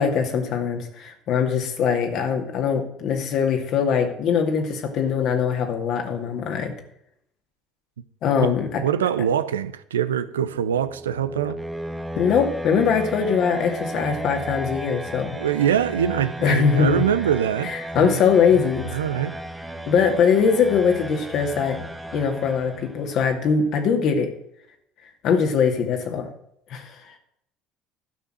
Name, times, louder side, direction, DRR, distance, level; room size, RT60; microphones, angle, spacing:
voice 1, 0.0-6.7 8.2-8.7 12.2-15.4 16.4-17.1 17.6-18.9 19.9-21.8 22.1-24.3 25.2-26.3 26.7-26.9, left 6 dB, 55° left, 2.3 m, -21 dB
voice 2, 8.8-11.6 15.4-17.7 18.0-18.2 18.6-19.3, right 9 dB, 85° right, 0.6 m, -24 dB
sound 1, 10.3-23.2, right 1 dB, 5° right, 1.3 m, -35 dB
12.0 x 5.9 x 7.6 m
hypercardioid pair, 60°, 0 cm